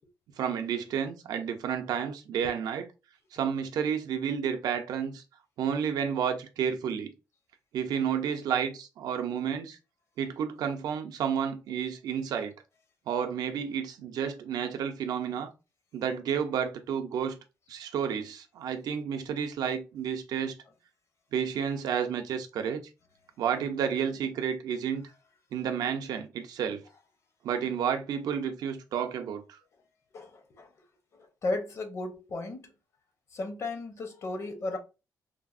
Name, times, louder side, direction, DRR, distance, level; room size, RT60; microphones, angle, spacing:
voice 1, 0.4-2.9 3.3-5.2 5.6-7.1 7.7-9.8 10.2-12.5 13.1-15.5 15.9-17.4 17.7-20.6 21.3-22.9 23.4-25.1 25.5-26.8 27.4-29.6, right 7 dB, 80° right, 0.5 m, -31 dB
voice 2, 30.1-30.7 31.4-32.7 33.3-34.8, left 2 dB, 45° left, 0.6 m, -34 dB
3.2 x 2.0 x 2.4 m
cardioid pair, 120°, 7 cm